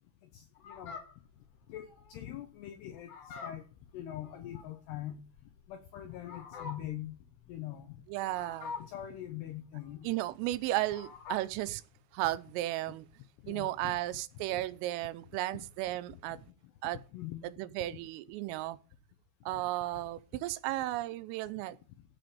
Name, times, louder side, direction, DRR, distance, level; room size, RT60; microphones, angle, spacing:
voice 1, 0.3-1.0 1.7-3.6 3.9-5.2 5.7-7.2 7.5-8.0 8.8-10.1 13.4-13.9 14.5-14.7 15.5-15.6 16.1-16.4 17.1-17.5, left 12 dB, 80° left, 2.4 m, -43 dB
Fowl, 0.6-11.6, left 5 dB, 60° left, 4.9 m, -47 dB
voice 2, 8.1-8.8 10.0-11.8 12.1-13.1 13.5-16.4 16.8-17.0 17.4-18.8 19.5-21.8, right 16 dB, 85° right, 3.3 m, -34 dB
16.0 x 6.0 x 5.1 m
omnidirectional pair, 5.9 m